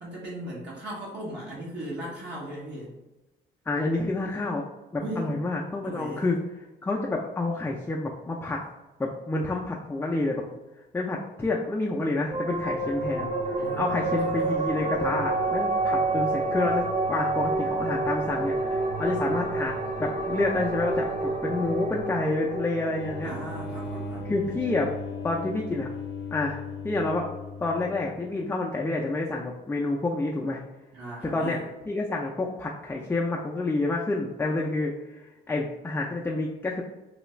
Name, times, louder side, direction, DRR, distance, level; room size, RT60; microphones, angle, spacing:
voice 1, 0.0-2.9 5.0-5.4 5.8-6.3 13.6-14.6 23.2-24.3 30.9-31.6, right 1 dB, 60° right, -5 dB, 0.9 m, -37 dB
voice 2, 3.7-4.6 4.9-6.4 6.8-8.6 9.0-10.4 10.9-19.7 20.0-23.3 24.2-24.9 25.2-25.9 26.3-26.6 26.8-27.2 27.6-30.6 31.2-31.6 31.9-36.8, left 2 dB, 10° left, -1 dB, 0.3 m, -28 dB
sound 1, 12.3-25.1, right 2 dB, 35° right, 0.6 m, -29 dB
sound 2, 22.9-28.3, left 3 dB, 70° left, 0.6 m, -37 dB
3.2 x 2.3 x 3.0 m, 1.1 s
cardioid pair, 90°, 20 cm